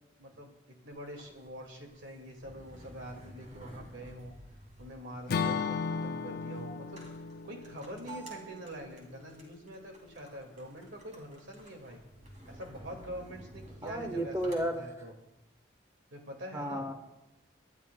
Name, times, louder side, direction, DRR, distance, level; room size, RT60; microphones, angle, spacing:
voice 1, 0.2-0.5 0.8-4.3 4.8-7.0 7.4-12.0 12.5-15.1 16.1-16.9, equal, 70° right, 3 dB, 2.1 m, -45 dB
sound 1, 0.9-14.7, right 2 dB, 40° right, 2.8 m, -53 dB
Acoustic guitar / Strum, 5.3-9.4, left 5 dB, 50° left, 0.4 m, -36 dB
voice 2, 13.8-14.9 16.5-16.9, right 1 dB, 15° right, 4 dB, 1.0 m, -33 dB
25.5 x 11.0 x 2.3 m, 0.97 s
head